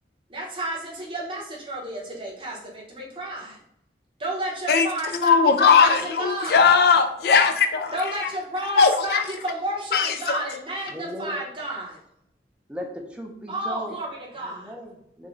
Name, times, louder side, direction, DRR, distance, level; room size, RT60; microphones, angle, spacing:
voice 1, 0.3-3.6 4.2-6.6 7.9-12.0 13.5-14.7, right 1 dB, 30° right, -4 dB, 0.9 m, -32 dB
voice 2, 5.1-7.9 8.2-8.3 8.8-9.2 9.9-10.4, left 5 dB, 60° left, 7 dB, 0.3 m, -18 dB
voice 3, 10.9-11.4 12.7-13.9 14.4-15.3, equal, 5° right, 1 dB, 0.5 m, -37 dB
3.8 x 2.1 x 3.1 m, 0.75 s
head